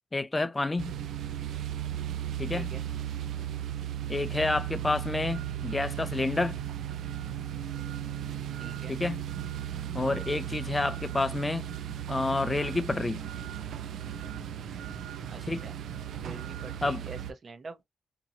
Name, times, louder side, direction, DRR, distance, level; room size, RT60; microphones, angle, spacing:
voice 1, 0.1-0.9 2.4-2.7 4.1-6.6 8.9-9.2 9.9-11.6 12.1-13.2 15.4-15.7 16.8-17.0, left 2 dB, 20° left, 0.4 m, -29 dB
sound 1, 0.8-17.3, right 10 dB, 80° right, 0.4 m, -36 dB
voice 2, 2.5-2.8 8.6-9.0 15.3-15.7 16.2-17.8, right 4 dB, 40° right, 0.8 m, -45 dB
2.8 x 2.8 x 2.5 m
cardioid pair, 125°, 0 cm